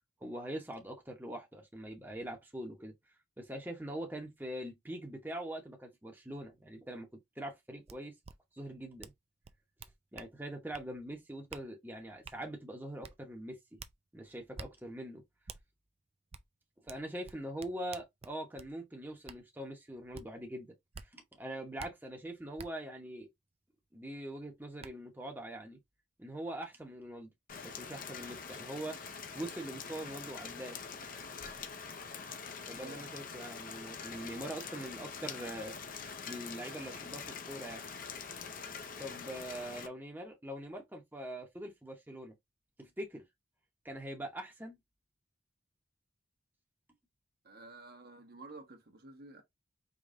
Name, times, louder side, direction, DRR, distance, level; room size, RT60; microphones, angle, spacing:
voice 1, 0.2-2.9 3.4-7.1 7.4-8.1 8.5-9.1 10.1-13.8 14.1-15.2 16.8-20.7 21.0-23.3 23.9-25.8 26.2-27.3 27.6-29.0 29.3-30.8 32.7-35.8 36.3-37.9 39.0-42.4 42.8-43.2 43.8-44.8, right 1 dB, 10° right, 0.9 m, -43 dB
sound 1, 7.9-8.0 8.2-8.3 9.0-9.2 9.4-10.3 10.7-10.9 11.5-11.6 12.2-12.4 13.0-13.1 13.8-13.9 14.5-14.7 15.5-15.6 16.3-16.4 16.9-18.7 19.3-19.4 20.1-20.3 20.9-21.1 21.8-21.9 22.6-22.7 24.2-24.3 24.8-24.9, right 5 dB, 35° right, 0.4 m, -48 dB
Rain, 27.5-39.9, left 5 dB, 45° left, 0.7 m, -45 dB
voice 2, 47.4-49.4, right 3 dB, 55° right, 1.2 m, -51 dB
5.0 x 3.1 x 2.6 m
head